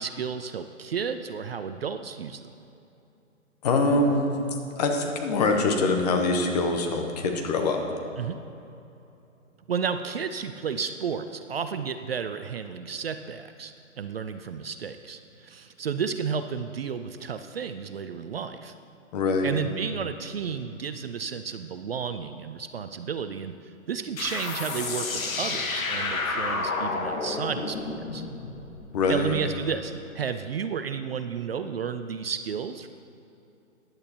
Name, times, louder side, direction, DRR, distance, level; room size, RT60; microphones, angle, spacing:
voice 1, 0.0-2.5 8.2-8.4 9.7-18.7 19.4-28.2 29.1-32.9, right 6 dB, 50° right, 9 dB, 0.5 m, -32 dB
voice 2, 3.6-4.3 4.8-7.8 19.1-19.5 28.9-29.4, left 3 dB, 30° left, 3 dB, 1.0 m, -24 dB
sound 1, 24.2-29.4, left 3 dB, 85° left, 1.5 m, -31 dB
15.5 x 10.5 x 2.9 m, 2.8 s
hypercardioid pair, 145°, 40 cm